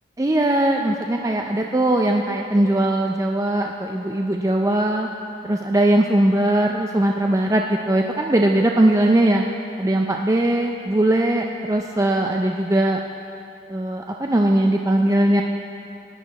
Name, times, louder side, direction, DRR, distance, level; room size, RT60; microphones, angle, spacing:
voice 1, 0.2-5.1 5.4-9.5 9.8-13.0 13.7-15.4, right 1 dB, 15° right, 2 dB, 0.4 m, -20 dB
18.0 x 10.5 x 4.1 m, 2.7 s
head